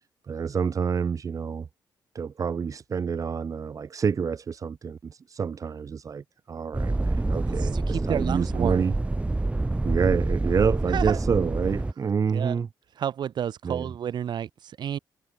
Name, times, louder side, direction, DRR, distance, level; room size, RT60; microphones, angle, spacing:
voice 1, 0.3-1.7 2.1-8.9 9.8-12.7 13.6-13.9, right 6 dB, 45° right, 3.4 m, -28 dB
sound 1, 6.7-11.9, right 2 dB, 15° right, 1.9 m, -27 dB
voice 2, 7.6-8.8 10.9-11.2 12.3-12.6 13.0-15.0, right 9 dB, 70° right, 7.7 m, -31 dB
cardioid pair, 110°, 8 cm